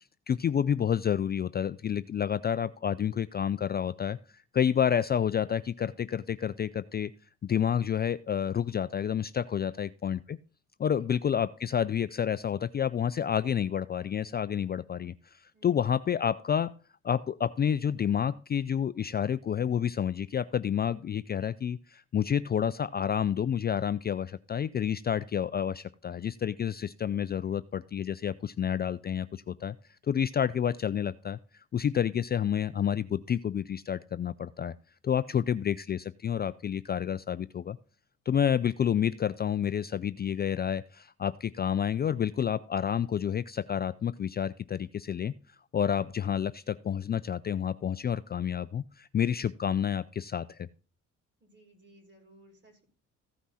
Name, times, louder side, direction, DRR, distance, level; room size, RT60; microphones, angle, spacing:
voice 1, 0.3-4.2 4.5-7.1 7.4-10.4 10.8-16.7 17.0-29.8 30.1-34.7 35.0-37.8 38.3-45.3 45.7-50.7, left 8 dB, 35° left, 14 dB, 0.4 m, -29 dB
voice 2, 9.5-9.9 10.8-11.2 15.5-15.8 51.4-52.8, right 1 dB, 40° right, 1 dB, 5.9 m, -59 dB
15.5 x 5.9 x 4.2 m, 0.36 s
cardioid pair, 90°, 30 cm